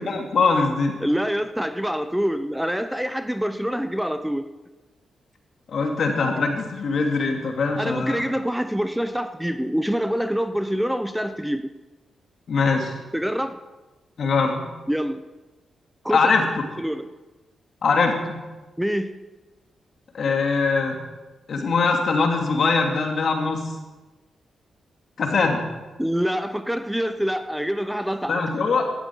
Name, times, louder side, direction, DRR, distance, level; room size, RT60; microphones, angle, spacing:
voice 1, 0.0-1.0 5.7-8.2 12.5-12.9 14.2-14.7 16.1-16.5 17.8-18.4 20.1-21.0 21.5-23.7 25.2-25.7 28.3-28.8, left 4 dB, 65° left, 2 dB, 2.6 m, -22 dB
voice 2, 1.0-4.4 7.7-11.7 13.1-13.6 14.9-15.2 16.0-16.2 16.8-17.0 18.8-19.1 26.0-28.4, equal, 5° right, 9 dB, 1.0 m, -25 dB
17.5 x 12.5 x 4.7 m, 1.2 s
supercardioid pair, 50°, 0 cm